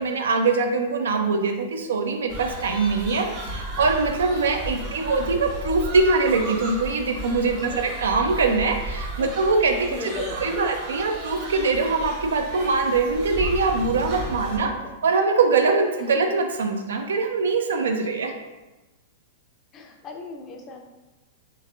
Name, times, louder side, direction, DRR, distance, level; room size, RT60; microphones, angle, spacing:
voice 1, 0.0-10.0 10.4-14.7 15.0-18.3, right 4 dB, 80° right, 4 dB, 0.5 m, -23 dB
sound 1, 2.3-14.6, right 1 dB, 40° right, 0.9 m, -34 dB
voice 2, 4.8-5.1 7.6-7.8 9.2-9.4 9.9-10.7 14.6-14.7 16.0-16.2 19.7-20.8, left 3 dB, 30° left, 4 dB, 0.5 m, -36 dB
3.4 x 3.1 x 2.4 m, 1.1 s
hypercardioid pair, 115°, 0 cm